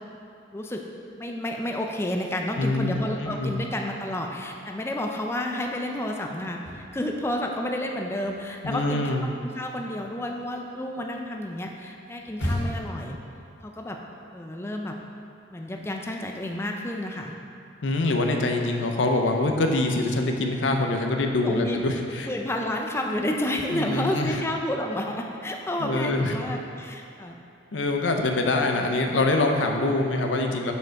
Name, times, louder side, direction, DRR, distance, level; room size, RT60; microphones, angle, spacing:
voice 1, 0.5-0.9 1.2-13.2 13.6-14.0 14.3-15.0 15.5-17.3 21.4-21.8 22.2-27.4, left 1 dB, 15° left, 2 dB, 0.4 m, -30 dB
voice 2, 2.6-3.6 8.6-9.2 17.8-22.3 23.7-24.4 25.8-26.5 27.7-30.7, left 2 dB, 90° left, 3 dB, 0.6 m, -25 dB
sound 1, 6.4-7.6 7.9-13.0, left 1 dB, 75° left, 1.5 m, -35 dB
6.5 x 5.2 x 4.6 m, 2.5 s
head